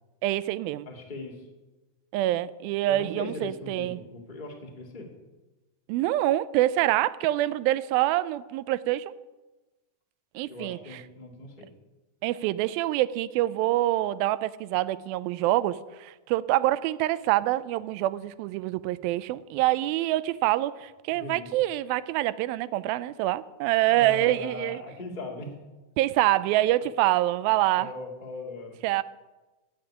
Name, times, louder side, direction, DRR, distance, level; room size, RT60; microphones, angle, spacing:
voice 1, 0.2-0.9 2.1-4.0 5.9-9.1 10.4-11.0 12.2-24.8 26.0-27.9 28.8-29.0, right 15 dB, 85° right, 2.3 m, -26 dB
voice 2, 0.8-1.5 2.9-5.1 10.5-11.7 21.1-21.5 23.9-25.5 27.8-28.8, left 2 dB, 20° left, 1.5 m, -39 dB
16.0 x 5.4 x 10.0 m
omnidirectional pair, 4.2 m